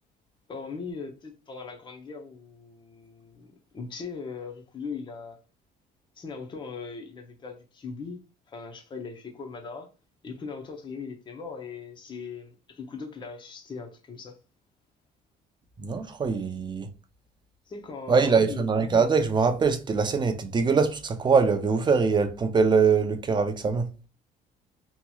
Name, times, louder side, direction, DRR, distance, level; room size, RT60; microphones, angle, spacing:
voice 1, 0.5-5.4 6.2-8.2 8.5-9.9 10.2-14.4 17.7-18.6, left 5 dB, 25° left, 0.6 m, -39 dB
voice 2, 15.8-16.9 18.1-23.9, right 5 dB, 25° right, 0.5 m, -23 dB
2.9 x 2.8 x 2.3 m
cardioid pair, 110°, 17 cm